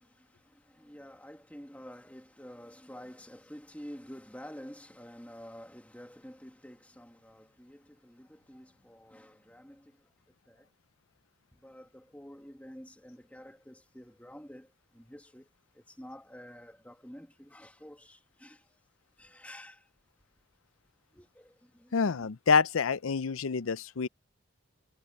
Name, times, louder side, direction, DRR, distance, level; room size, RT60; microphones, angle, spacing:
voice 1, 0.0-10.7 11.5-18.8 19.2-19.9 21.1-22.3, equal, 5° left, 2.2 m, -50 dB
voice 2, 21.9-24.1, left 5 dB, 80° left, 0.6 m, -27 dB
head